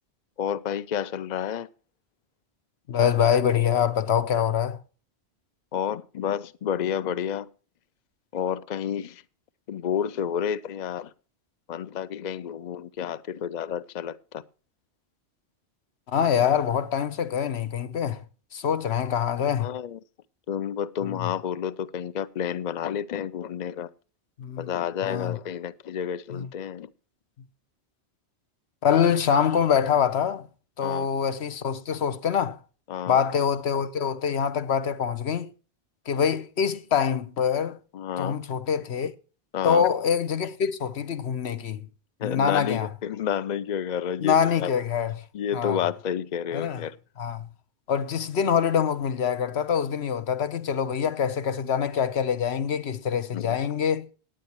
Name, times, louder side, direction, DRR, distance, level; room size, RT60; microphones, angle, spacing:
voice 1, 0.4-1.7 5.7-7.5 8.3-9.2 9.7-11.1 11.7-14.4 19.6-20.0 20.5-23.9 24.6-26.9 30.8-31.1 32.9-33.2 37.9-38.4 39.5-39.9 42.2-44.7 45.3-46.9 53.3-53.6, left 9 dB, 45° left, 0.7 m, -30 dB
voice 2, 2.9-4.8 16.1-18.2 18.5-19.7 21.0-21.3 24.4-24.7 25.0-25.4 26.3-26.5 28.8-30.5 30.8-32.6 33.1-35.5 36.1-37.8 38.2-39.1 39.6-41.9 42.2-42.9 44.2-45.1 45.5-45.8 46.5-46.8 47.2-47.5 47.9-54.1, left 7 dB, 70° left, 1.2 m, -25 dB
18.0 x 9.6 x 3.1 m
omnidirectional pair, 1.1 m